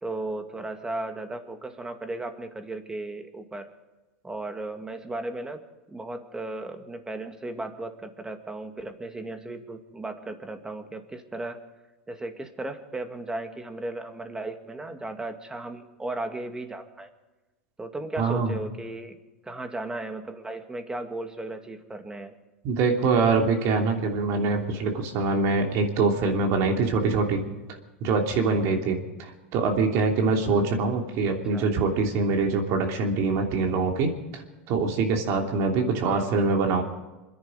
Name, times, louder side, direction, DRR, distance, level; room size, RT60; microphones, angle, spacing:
voice 1, 0.0-3.7 4.2-5.6 5.9-11.6 12.1-17.1 17.8-19.2 19.4-22.3 31.5-31.7 36.0-36.3, right 2 dB, 10° right, 6 dB, 2.1 m, -35 dB
voice 2, 18.2-18.6 22.6-27.4 28.0-36.8, right 4 dB, 50° right, 3 dB, 3.1 m, -24 dB
27.0 x 10.5 x 5.1 m, 1.1 s
hypercardioid pair, 95°, 6 cm